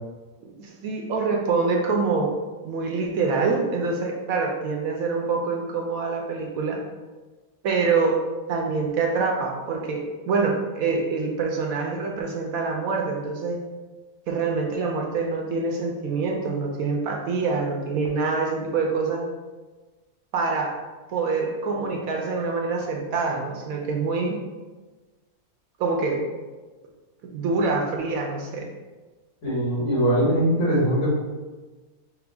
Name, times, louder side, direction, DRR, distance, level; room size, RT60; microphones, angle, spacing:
voice 1, 0.6-2.4 2.6-6.8 7.6-8.2 8.5-13.6 14.3-19.2 20.3-20.7 21.1-24.4 25.8-26.2 27.3-28.7, right 4 dB, 70° right, 1 dB, 1.0 m, -25 dB
voice 2, 29.4-31.2, equal, 55° left, -7 dB, 1.9 m, -21 dB
5.7 x 2.1 x 3.4 m, 1.3 s
omnidirectional pair, 1.6 m